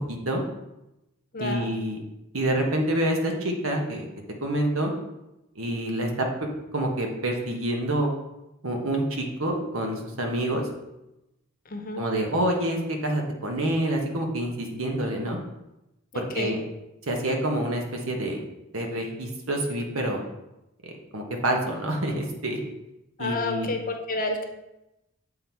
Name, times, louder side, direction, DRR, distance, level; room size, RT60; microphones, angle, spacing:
voice 1, 0.1-0.4 1.4-2.0 2.3-4.0 4.4-4.9 5.6-6.3 6.7-8.1 8.6-10.7 12.0-15.4 16.1-16.6 17.1-18.4 18.7-20.2 20.8-22.6 23.2-23.7, right 1 dB, 80° right, 2 dB, 1.2 m, -27 dB
voice 2, 1.3-1.7 11.7-12.0 16.1-16.6 23.2-24.5, left 2 dB, 45° left, 4 dB, 0.8 m, -30 dB
7.6 x 3.9 x 4.5 m, 0.93 s
head